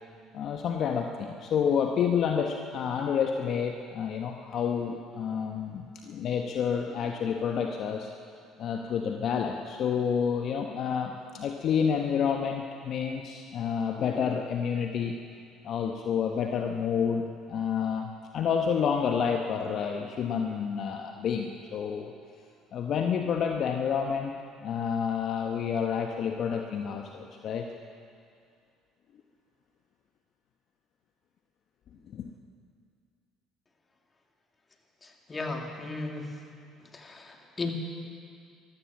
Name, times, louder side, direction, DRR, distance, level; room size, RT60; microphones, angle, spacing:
voice 1, 0.3-8.1 8.6-15.2 15.6-22.1 22.7-24.3 24.6-27.7 32.1-32.3, left 7 dB, 55° left, 3 dB, 1.0 m, -29 dB
voice 2, 35.0-36.4 36.9-37.7, left 3 dB, 30° left, 2 dB, 2.5 m, -36 dB
15.0 x 13.0 x 7.2 m, 2.3 s
hypercardioid pair, 65°, 0 cm